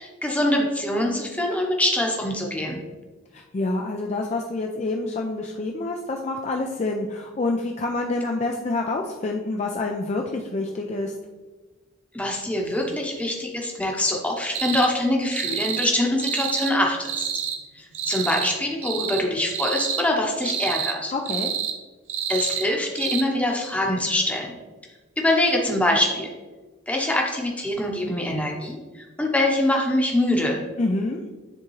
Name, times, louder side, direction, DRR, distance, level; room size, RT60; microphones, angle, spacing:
voice 1, 0.0-2.8 12.1-17.3 17.7-21.1 22.3-24.5 25.2-26.3 26.9-30.6, left 1 dB, 5° left, 0 dB, 0.9 m, -24 dB
voice 2, 3.3-11.1 21.1-21.5 30.8-31.2, left 2 dB, 35° left, 1 dB, 0.4 m, -27 dB
sound 1, 14.5-14.9 15.3-15.9 16.2-16.7 17.0-17.6 17.9-18.6 18.8-19.2 19.5-20.0 20.4-20.9 21.3-21.8 22.1-22.7 23.0-23.2, right 8 dB, 65° right, 0.7 m, -28 dB
10.0 x 3.6 x 3.1 m, 1.3 s
head